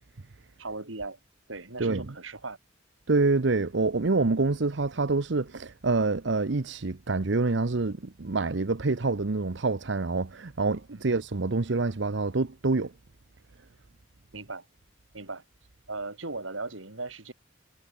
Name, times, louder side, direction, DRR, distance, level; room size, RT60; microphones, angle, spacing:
voice 1, 0.6-1.2 1.5-2.6 14.3-14.7 15.1-15.4 15.9-17.3, right 3 dB, 80° right, 4.0 m, -37 dB
voice 2, 1.8-2.1 3.1-12.9, right 3 dB, 65° right, 0.8 m, -26 dB
head